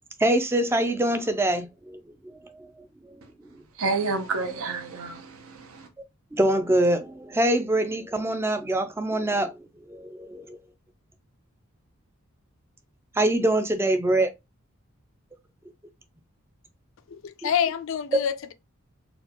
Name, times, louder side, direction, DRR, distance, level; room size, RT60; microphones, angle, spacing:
voice 1, 0.2-2.7 6.3-9.6 9.9-10.6 13.2-14.3 17.4-17.5, right 1 dB, 10° right, 0.3 m, -24 dB
voice 2, 3.8-5.9, right 3 dB, 75° right, 0.7 m, -29 dB
voice 3, 17.1-18.5, left 8 dB, 65° left, 0.4 m, -27 dB
4.1 x 2.3 x 2.8 m
head